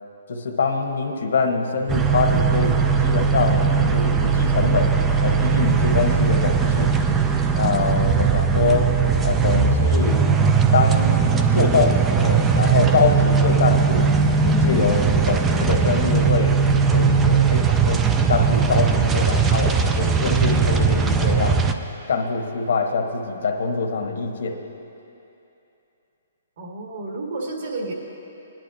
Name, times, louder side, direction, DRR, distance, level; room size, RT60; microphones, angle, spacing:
voice 1, 0.3-4.9 5.2-6.9 7.5-8.9 9.2-10.3 10.7-14.1 14.4-16.6 16.9-21.6 22.1-24.6, left 4 dB, 70° left, 3 dB, 1.1 m, -24 dB
sound 1, 1.9-21.7, right 5 dB, 10° right, 0.3 m, -19 dB
voice 2, 26.6-27.9, right 2 dB, 50° right, 0 dB, 1.6 m, -31 dB
19.5 x 10.5 x 2.7 m, 2.9 s
hypercardioid pair, 170°, 0 cm